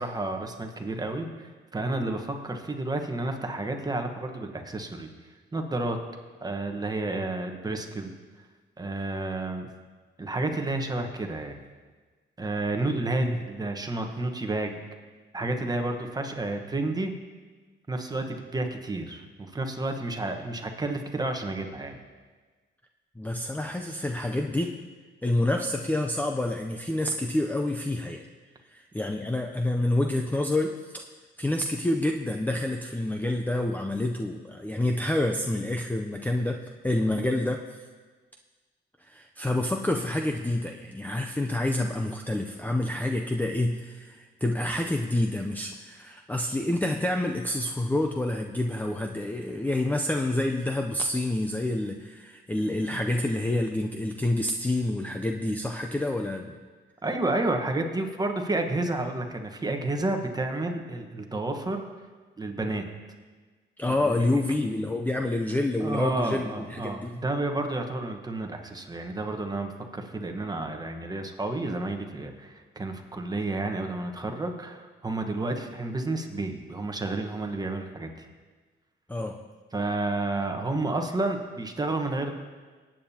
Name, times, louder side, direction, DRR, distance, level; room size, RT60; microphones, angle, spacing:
voice 1, 0.0-5.1 5.5-6.0 6.4-8.1 8.8-9.7 10.2-11.6 12.4-14.8 15.3-17.1 17.9-22.0 57.0-61.8 62.4-62.8 63.9-64.4 65.8-78.3 79.7-82.3, right 2 dB, 20° right, 4 dB, 1.2 m, -31 dB
voice 2, 23.2-24.8 25.2-28.2 28.7-31.1 31.4-37.6 39.0-56.6 63.8-67.1 79.1-79.4, left 1 dB, 10° left, 3 dB, 0.5 m, -28 dB
19.0 x 8.9 x 2.9 m, 1.4 s
cardioid pair, 90°, 20 cm